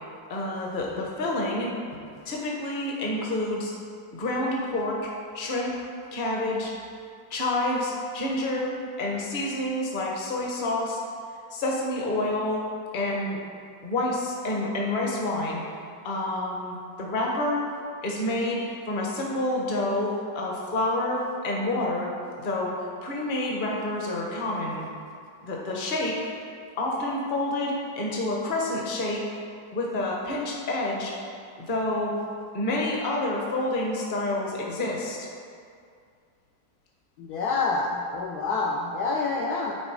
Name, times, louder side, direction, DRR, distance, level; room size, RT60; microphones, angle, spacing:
voice 1, 0.3-2.0 2.2-3.7 4.1-5.1 5.3-5.8 6.1-6.7 7.3-11.0 11.5-12.6 12.9-13.4 13.8-15.6 16.0-17.6 18.0-22.1 22.4-24.8 25.4-26.2 26.8-29.2 29.7-31.2 31.7-32.1 32.5-35.3, left 1 dB, 35° left, -2 dB, 1.0 m, -28 dB
voice 2, 37.2-39.8, left 3 dB, 70° left, -1 dB, 1.0 m, -27 dB
8.9 x 4.0 x 4.7 m, 2.3 s
omnidirectional pair, 2.0 m